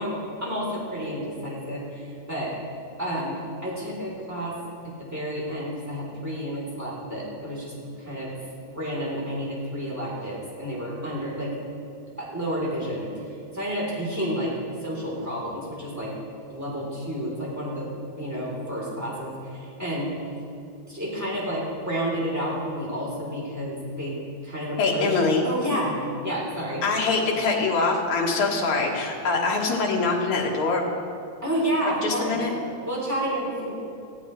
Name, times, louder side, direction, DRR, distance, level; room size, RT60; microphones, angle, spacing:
voice 1, 0.0-2.5 3.0-4.6 4.8-8.3 8.7-11.5 12.2-14.5 14.8-16.1 16.5-20.2 20.9-24.2 24.4-25.2 25.4-26.0 26.2-26.8 31.4-32.4 32.8-33.7, equal, 5° right, -5 dB, 3.2 m, -30 dB
voice 2, 24.8-25.4 26.8-30.8 32.0-32.5, left 3 dB, 70° left, -1 dB, 3.0 m, -24 dB
18.0 x 15.5 x 3.2 m, 2.5 s
omnidirectional pair, 3.5 m